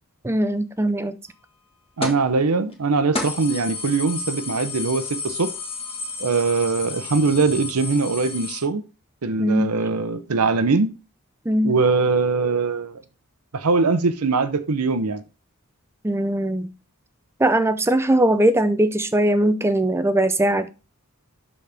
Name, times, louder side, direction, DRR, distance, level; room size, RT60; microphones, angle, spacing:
voice 1, 0.2-1.2 9.4-9.7 11.5-11.7 16.0-16.7 17.4-20.7, right 1 dB, 10° right, 0.5 m, -20 dB
sound 1, 2.0-2.3 2.7-2.8 3.1-8.6, left 3 dB, 25° left, 1.5 m, -31 dB
voice 2, 2.0-5.5 6.2-8.8 9.2-10.9 11.6-13.0 13.5-15.2, right 4 dB, 85° right, 0.7 m, -22 dB
11.5 x 4.2 x 3.4 m
head